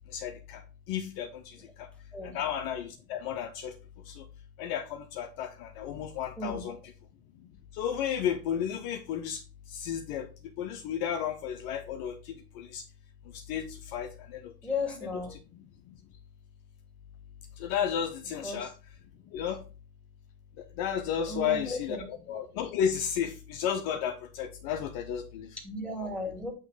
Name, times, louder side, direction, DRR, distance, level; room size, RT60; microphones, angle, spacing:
voice 1, 0.1-0.6 0.9-1.9 2.2-3.7 4.1-4.2 4.6-6.8 7.7-9.4 9.7-10.3 10.6-12.8 13.3-14.5 17.6-18.7 19.3-19.6 20.8-25.5, left 8 dB, 45° left, 6 dB, 0.9 m, -33 dB
voice 2, 6.4-6.7 14.6-15.4 18.4-18.7 21.3-22.0 25.6-26.5, left 2 dB, ahead, 0 dB, 2.3 m, -35 dB
9.0 x 3.1 x 5.0 m, 0.33 s
supercardioid pair, 130°, 49 cm